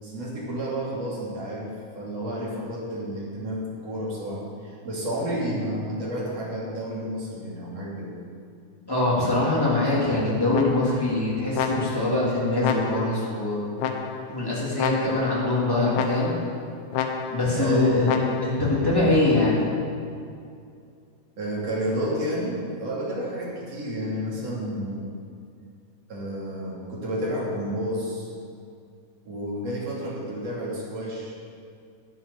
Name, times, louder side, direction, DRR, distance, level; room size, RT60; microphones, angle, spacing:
voice 1, 0.0-8.1 17.6-18.1 21.4-25.1 26.1-28.3 29.3-31.4, equal, 55° right, -5 dB, 3.9 m, -30 dB
voice 2, 8.9-13.6 14.3-16.3 17.3-19.6, left 2 dB, 5° left, -7 dB, 3.1 m, -23 dB
sound 1, 10.5-11.1 11.5-12.2 12.6-13.3 13.8-14.4 14.8-15.4 15.9-16.5 16.9-17.6 18.0-18.7, left 7 dB, 75° left, 2.0 m, -30 dB
11.5 x 8.8 x 7.1 m, 2.4 s
omnidirectional pair, 3.4 m